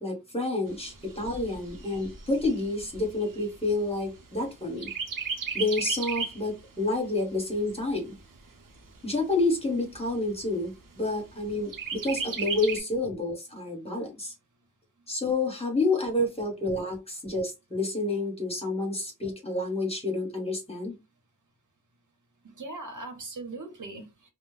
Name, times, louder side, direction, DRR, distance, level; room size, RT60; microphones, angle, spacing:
voice 1, 0.0-4.9 5.5-8.1 9.0-14.3 15.1-21.0, left 2 dB, 20° left, 1.2 m, -29 dB
Chirp tweet, 0.7-4.4 4.8-6.5 6.9-7.0 7.4-8.4 9.0-9.1 9.4-9.5 9.9-10.5 11.7-12.8, right 5 dB, 90° right, 0.7 m, -35 dB
voice 2, 22.4-24.3, right 2 dB, 70° right, 1.0 m, -40 dB
2.3 x 2.1 x 3.2 m
wide cardioid pair, 85°, 32 cm